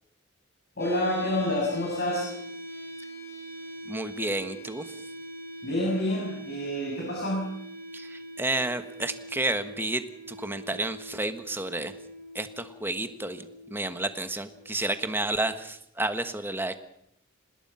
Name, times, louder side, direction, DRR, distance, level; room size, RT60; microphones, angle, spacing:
voice 1, 0.8-2.3 5.6-7.6, left 1 dB, 50° left, -3 dB, 7.5 m, -28 dB
sound 1, 0.8-14.7, right 1 dB, 15° left, 5.4 m, -43 dB
voice 2, 3.8-5.0 7.9-11.9 12.3-16.9, right 2 dB, 10° right, 9 dB, 1.4 m, -31 dB
26.0 x 20.0 x 5.7 m, 0.75 s
head